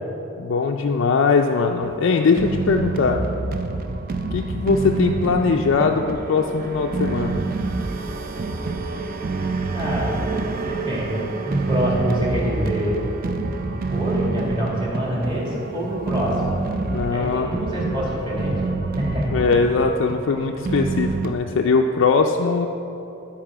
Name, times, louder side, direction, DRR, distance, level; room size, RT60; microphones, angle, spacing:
voice 1, 0.4-3.3 4.3-7.4 16.9-17.5 19.3-22.7, left 4 dB, 65° left, 2 dB, 0.4 m, -20 dB
sound 1, 1.8-21.3, right 3 dB, 45° right, 0.5 m, -27 dB
voice 2, 9.7-10.2 10.5-13.0 13.9-16.6 17.1-18.5 19.0-19.4, equal, 25° right, -5 dB, 2.1 m, -26 dB
12.5 x 4.8 x 4.9 m, 3.0 s
head